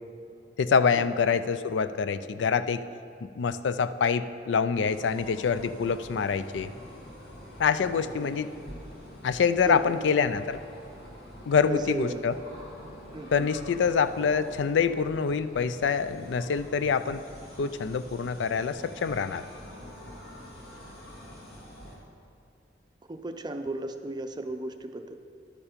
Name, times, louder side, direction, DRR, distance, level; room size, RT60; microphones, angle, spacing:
voice 1, 0.6-2.8 3.2-6.7 7.6-8.5 9.2-10.6 11.5-12.4 13.3-17.2 17.6-19.4, left 6 dB, 90° left, 13 dB, 0.4 m, -26 dB
sound 1, 4.8-22.0, equal, 60° left, 2.1 m, -46 dB
voice 2, 7.9-8.3 9.6-10.0 11.7-12.2 13.1-13.5 23.1-25.2, right 2 dB, 25° right, 7 dB, 0.5 m, -35 dB
11.5 x 7.1 x 5.1 m, 2.6 s
head